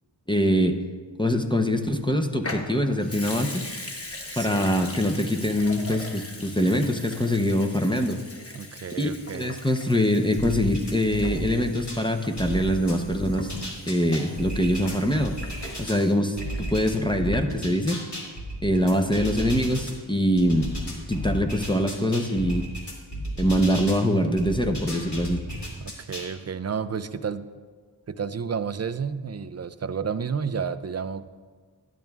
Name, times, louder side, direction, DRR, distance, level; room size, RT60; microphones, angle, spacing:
voice 1, 0.3-0.8 1.2-3.6 4.4-8.2 9.0-13.5 13.9-15.4 15.8-18.0 18.6-20.7 21.1-22.7 23.4-25.4, equal, 10° left, 4 dB, 0.6 m, -24 dB
Water tap faucet / Sink (filling or washing) / Liquid, 2.4-17.0 17.3-17.4, left 1 dB, 30° left, 1.0 m, -41 dB
voice 2, 4.3-4.8 8.5-9.6 25.8-27.5 28.1-31.3, right 6 dB, 35° right, 13 dB, 0.4 m, -31 dB
sound 1, 10.4-12.0 12.4-16.0 16.4-19.9 20.4-24.0 24.4-26.3, equal, 60° left, 2.2 m, -33 dB
12.0 x 10.5 x 2.3 m, 1.5 s
wide cardioid pair, 50°, 46 cm